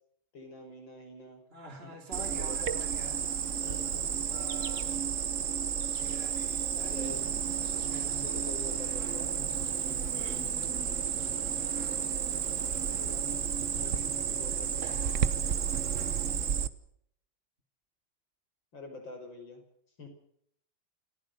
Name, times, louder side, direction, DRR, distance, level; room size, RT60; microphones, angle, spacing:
voice 1, 0.3-1.4 1.8-2.8 3.6-4.2 6.7-7.2 8.0-9.4 10.1-10.5 12.9-15.4 18.7-19.6 20.0-20.1, left 2 dB, 65° left, 4 dB, 6.3 m, -46 dB
voice 2, 1.5-3.2 4.3-5.0 6.0-7.1 7.7-8.2, right 2 dB, 30° right, 3 dB, 3.1 m, -48 dB
Cricket, 2.1-16.7, right 8 dB, 50° right, 1.1 m, -32 dB
sound 1, 6.9-16.6, right 6 dB, 70° right, 2.4 m, -46 dB
29.0 x 15.0 x 6.8 m, 0.68 s
omnidirectional pair, 2.2 m